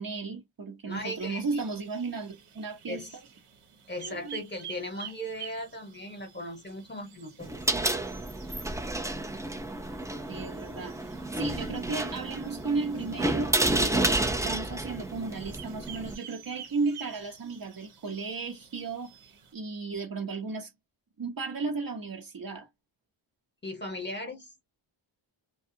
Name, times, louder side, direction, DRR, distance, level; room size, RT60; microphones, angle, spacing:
voice 1, 0.0-3.1 4.0-4.4 10.3-20.7 21.2-22.7, right 4 dB, 45° right, 0.9 m, -35 dB
voice 2, 0.8-1.4 2.9-3.1 3.9-7.5 23.6-24.5, left 1 dB, 20° left, 1.1 m, -37 dB
sound 1, 0.9-19.5, right 9 dB, 85° right, 1.1 m, -50 dB
sound 2, 7.4-16.1, right 1 dB, 5° right, 0.5 m, -30 dB
2.3 x 2.3 x 2.7 m
wide cardioid pair, 100°, 49 cm